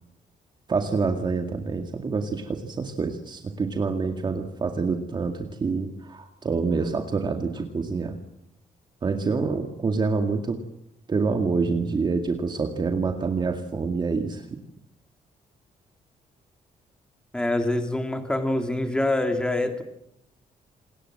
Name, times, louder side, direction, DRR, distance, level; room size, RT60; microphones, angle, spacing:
voice 1, 0.7-8.2 9.0-10.6 11.1-14.5, right 4 dB, 30° right, 5 dB, 2.1 m, -27 dB
voice 2, 17.3-19.8, left 1 dB, 5° left, 6 dB, 2.6 m, -25 dB
28.0 x 20.0 x 7.8 m, 0.78 s
cardioid pair, 140°, 14 cm